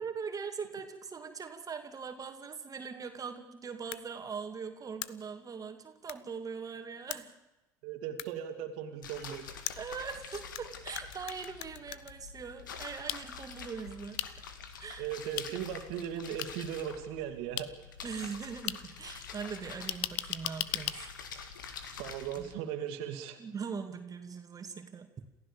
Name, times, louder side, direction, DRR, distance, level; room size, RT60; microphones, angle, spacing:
voice 1, 0.0-7.3 9.8-14.2 14.8-15.1 18.0-21.1 22.4-22.5 23.4-25.1, right 6 dB, 35° right, 6 dB, 2.5 m, -41 dB
sound 1, 3.9-4.0 5.0-5.1 6.1-6.2 7.1-7.2 8.2-8.3 9.7-10.6 11.0-12.1 13.1-13.2 14.2-14.3 15.4-15.5 16.4-16.5 17.6-17.7 18.7-18.8 19.9-21.0, left 16 dB, 65° left, 0.9 m, -36 dB
voice 2, 7.8-9.5 15.0-17.7 22.0-23.4, right 9 dB, 65° right, 6 dB, 2.5 m, -38 dB
sound 2, 9.0-22.6, left 6 dB, 85° left, 2.0 m, -47 dB
28.0 x 15.5 x 7.2 m, 1.0 s
hypercardioid pair, 60°, 10 cm